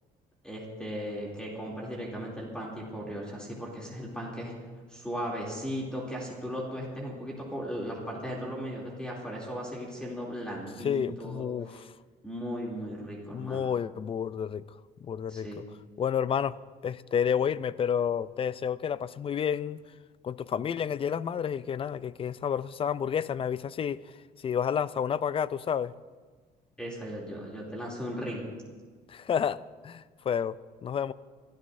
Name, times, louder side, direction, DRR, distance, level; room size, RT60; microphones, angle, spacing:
voice 1, 0.4-4.5 4.9-11.8 12.2-13.7 15.3-15.6 26.8-28.4, equal, 5° left, -3 dB, 2.9 m, -37 dB
voice 2, 10.8-11.8 13.3-14.6 15.0-15.6 16.0-16.6 16.8-19.8 20.2-24.0 24.4-25.9 29.1-31.1, left 8 dB, 35° left, 18 dB, 0.4 m, -30 dB
29.5 x 13.0 x 2.7 m, 1.5 s
cardioid pair, 110°, 17 cm